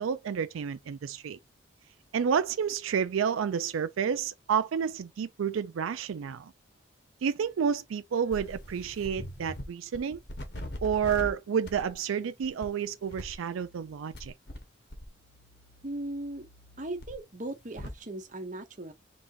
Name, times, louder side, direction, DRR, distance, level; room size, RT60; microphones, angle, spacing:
voice 1, 0.0-1.4 2.1-6.5 7.2-10.2 10.8-14.3, right 7 dB, 90° right, 0.4 m, -30 dB
sound 1, 8.3-9.7 9.9-11.3 11.7-11.9 12.4-12.7 13.1-14.6 14.9-18.0, left 1 dB, 55° left, 1.3 m, -43 dB
voice 2, 15.8-16.5 16.8-18.9, right 1 dB, 40° right, 1.0 m, -38 dB
5.0 x 3.5 x 2.7 m
head